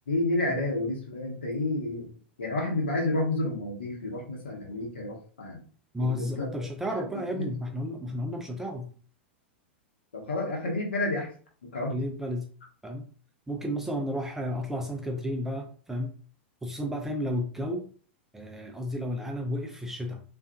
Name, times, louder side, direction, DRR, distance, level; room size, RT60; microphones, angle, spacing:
voice 1, 0.1-2.1 2.4-5.6 6.0-6.5 7.0-7.1 7.3-7.5 10.1-11.3 11.7-12.0, left 2 dB, 70° left, -1 dB, 1.0 m, -30 dB
voice 2, 5.9-8.9 11.9-12.5 12.8-13.1 13.5-16.1 16.6-17.9 18.3-20.2, equal, 5° right, 2 dB, 0.4 m, -32 dB
2.4 x 2.4 x 2.7 m, 0.42 s
figure-of-eight pair, 95°, 6 cm